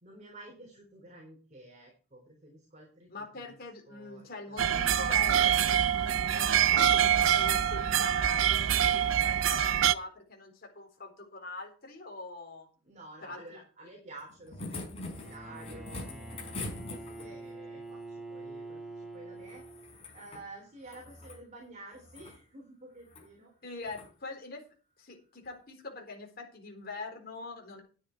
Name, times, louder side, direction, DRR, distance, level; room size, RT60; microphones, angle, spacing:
voice 1, 0.0-3.6 3.9-4.6 12.8-19.6 20.1-23.5, right 2 dB, 35° right, 0 dB, 3.7 m, -51 dB
voice 2, 3.1-12.7 13.2-13.4 23.6-24.6 25.0-27.8, left 3 dB, 50° left, 1 dB, 4.0 m, -43 dB
sound 1, 4.6-9.9, right 10 dB, 75° right, 0.5 m, -25 dB
sound 2, 14.2-17.5 19.4-20.5 20.8-21.4 21.9-22.4 23.0-23.3 23.8-24.1 25.5-25.6, left 2 dB, 30° left, 5.2 m, -43 dB
Bowed string instrument, 15.0-20.3, right 2 dB, ahead, 1.7 m, -46 dB
11.0 x 9.8 x 4.6 m, 0.38 s
head